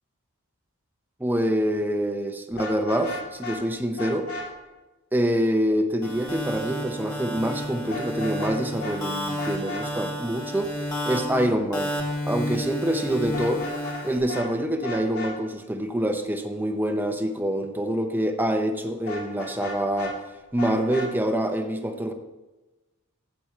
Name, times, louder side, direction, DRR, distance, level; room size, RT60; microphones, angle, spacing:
voice 1, 1.2-4.3 5.1-10.7 11.0-11.9 12.3-13.6 14.0-20.1 20.5-22.1, equal, 10° right, 5 dB, 0.8 m, -26 dB
Vehicle horn car horn honking, 2.5-3.6 4.0-4.4 7.9-8.5 8.8-8.9 9.4-9.8 13.2-14.0 14.3-14.5 14.8-15.3 19.1-20.1 20.6-21.1, left 2 dB, 65° left, 3.4 m, -34 dB
sound 1, 6.0-14.2, equal, 20° left, 2.1 m, -31 dB
13.5 x 8.4 x 3.3 m, 1.1 s
head